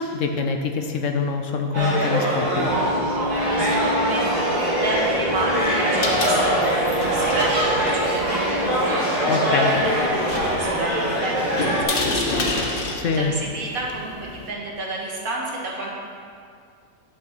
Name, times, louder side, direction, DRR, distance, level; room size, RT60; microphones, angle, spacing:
voice 1, 0.0-2.7 9.3-9.7 12.9-13.3, left 5 dB, 65° left, 5 dB, 1.0 m, -24 dB
sound 1, 1.7-11.8, right 1 dB, 30° right, 2.0 m, -23 dB
sound 2, 2.4-8.7, right 1 dB, 90° left, 2.1 m, -30 dB
voice 2, 3.6-15.9, right 2 dB, 70° right, -3 dB, 2.1 m, -31 dB
sound 3, 5.8-14.5, left 2 dB, 40° left, 1.1 m, -30 dB
9.9 x 6.0 x 6.6 m, 2.3 s
omnidirectional pair, 1.6 m